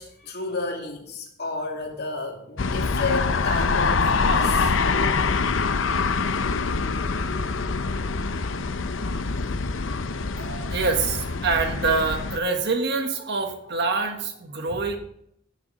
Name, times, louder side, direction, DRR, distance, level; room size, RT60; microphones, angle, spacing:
voice 1, 0.0-4.7 9.4-9.6 14.7-14.8, left 3 dB, 55° left, 2.5 m, -31 dB
sound 1, 2.6-12.4, left 4 dB, 85° left, 0.7 m, -25 dB
voice 2, 10.4-15.0, right 4 dB, 60° right, 1.5 m, -25 dB
16.5 x 7.2 x 4.0 m
head